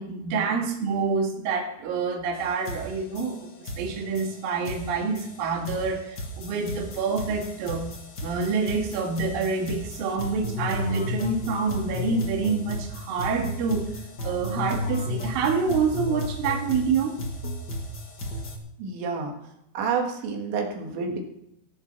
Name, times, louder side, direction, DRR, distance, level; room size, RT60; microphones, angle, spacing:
voice 1, 0.0-7.9 8.2-13.9 14.2-17.2, right 5 dB, 60° right, 1 dB, 3.2 m, -27 dB
sound 1, 2.3-2.4 2.6-18.6, left 1 dB, 75° left, 0.9 m, -34 dB
voice 2, 18.8-19.3 19.8-21.2, right 5 dB, 85° right, 1 dB, 4.3 m, -29 dB
17.0 x 7.3 x 5.9 m, 0.75 s
omnidirectional pair, 5.1 m